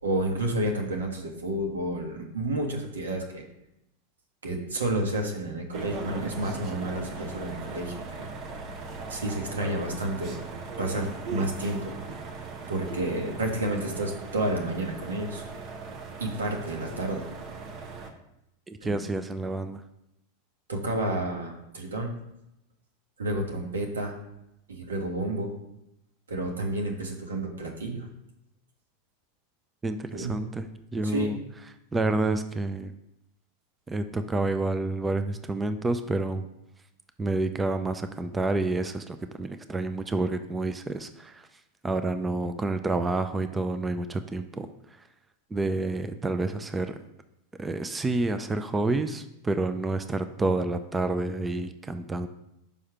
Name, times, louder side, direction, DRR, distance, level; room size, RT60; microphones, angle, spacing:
voice 1, 0.0-3.4 4.4-8.3 9.1-10.4 10.8-11.9 12.7-15.4 16.2-17.3 18.8-18.9 20.7-22.1 23.2-24.2 24.7-25.5 26.3-28.1 30.1-30.4 31.0-31.4, right 1 dB, 85° right, 2 dB, 1.4 m, -30 dB
sound 1, 5.7-18.1, right 4 dB, 45° right, 1.1 m, -39 dB
voice 2, 18.7-19.8 29.8-31.4 31.9-32.9 33.9-36.4 37.2-41.5 41.8-45.1 45.5-47.0 47.6-52.3, right 2 dB, 15° right, 9 dB, 0.5 m, -29 dB
5.4 x 4.9 x 5.9 m, 0.85 s
hypercardioid pair, 95°, 0 cm